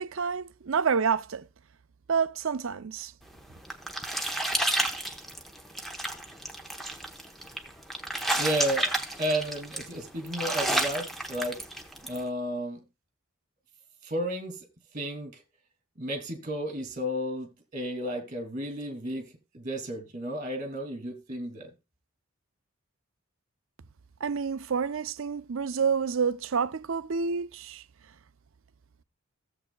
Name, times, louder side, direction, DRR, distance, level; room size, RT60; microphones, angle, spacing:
voice 1, 0.0-1.5 2.1-3.1 24.2-27.8, right 6 dB, 60° right, 0.5 m, -28 dB
sound 1, 3.3-12.2, right 1 dB, ahead, 1.0 m, -31 dB
voice 2, 8.4-8.9 9.2-11.6 12.0-12.8 14.0-14.6 14.9-15.4 16.0-21.7, equal, 35° right, 2.6 m, -32 dB
16.0 x 7.6 x 2.3 m
head